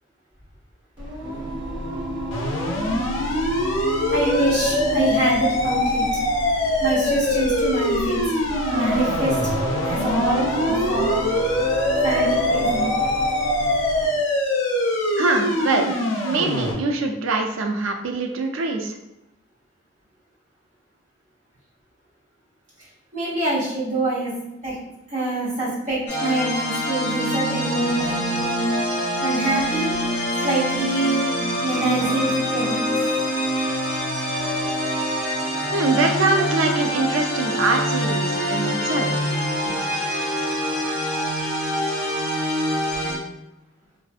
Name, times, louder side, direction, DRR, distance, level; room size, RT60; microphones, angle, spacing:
Singing, 1.0-14.2, right 1 dB, 15° right, 1.2 m, -29 dB
sound 1, 2.3-16.7, left 1 dB, 65° left, 0.5 m, -23 dB
voice 1, 4.1-6.0 6.8-8.2 8.7-9.4 9.8-11.2 12.0-12.9 23.1-24.3 24.6-24.7 25.1-28.7 29.2-30.0 30.4-31.3 31.6-32.9 39.7-39.8, right 1 dB, 35° right, -9 dB, 1.2 m, -25 dB
voice 2, 15.2-16.0 16.2-19.0 35.7-39.4, right 3 dB, 70° right, 4 dB, 0.4 m, -23 dB
sound 2, 26.1-43.2, equal, 35° left, 0.8 m, -25 dB
2.5 x 2.3 x 2.4 m, 0.88 s
head